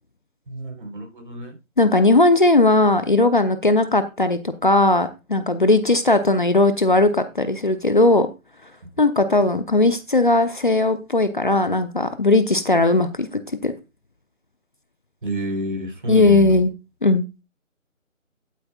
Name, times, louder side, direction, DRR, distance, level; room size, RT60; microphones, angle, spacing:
voice 1, 0.5-1.5 15.2-16.6, equal, 40° right, 3.9 m, -29 dB
voice 2, 1.8-8.3 9.0-13.3 13.6-13.7 16.1-16.7 17.0-17.2, left 2 dB, 40° left, 0.9 m, -18 dB
12.0 x 9.7 x 2.4 m
figure-of-eight pair, 160°, 40 cm